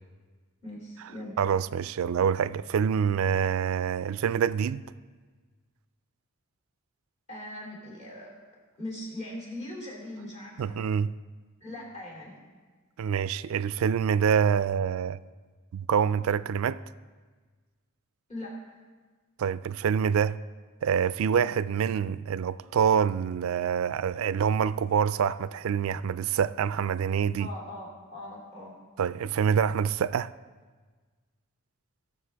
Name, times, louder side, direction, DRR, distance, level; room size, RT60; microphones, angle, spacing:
voice 1, 0.6-1.4 7.3-8.3 8.8-10.8 11.6-12.4 18.3-18.8 27.4-28.7, left 1 dB, 30° left, 3.1 m, -40 dB
voice 2, 1.4-4.9 10.6-11.1 13.0-15.2 15.7-16.8 19.4-20.4 20.8-27.5 29.0-30.3, right 7 dB, 75° right, 0.3 m, -26 dB
18.0 x 6.9 x 3.4 m
head